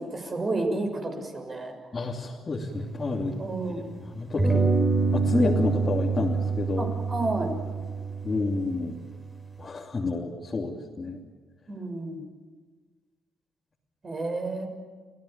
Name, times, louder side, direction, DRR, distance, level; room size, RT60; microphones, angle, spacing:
voice 1, 0.0-1.7 3.4-3.8 6.8-7.5 11.7-12.2 14.0-14.7, right 2 dB, 35° right, 4 dB, 6.5 m, -30 dB
voice 2, 1.9-3.4 3.8-4.6 5.1-6.9 8.2-9.0 9.6-11.2, left 3 dB, 30° left, -4 dB, 3.1 m, -29 dB
sound 1, 2.7-3.9 4.4-9.6, right 4 dB, 20° right, 4.6 m, -27 dB
28.5 x 17.0 x 9.0 m, 1.4 s
cardioid pair, 90°, 0 cm